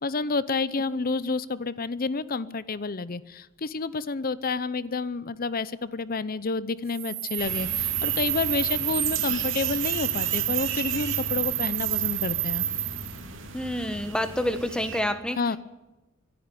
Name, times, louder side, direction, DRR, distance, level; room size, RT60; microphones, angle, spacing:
voice 1, 0.0-12.7 15.4-15.6, left 4 dB, 45° left, 16 dB, 0.7 m, -29 dB
sound 1, 6.9-13.2, right 14 dB, 90° right, 1.6 m, -29 dB
sound 2, 7.4-15.0, right 4 dB, 65° right, 3.2 m, -37 dB
voice 2, 13.5-15.4, left 1 dB, 5° left, 9 dB, 1.5 m, -28 dB
25.5 x 10.5 x 10.0 m, 1.1 s
head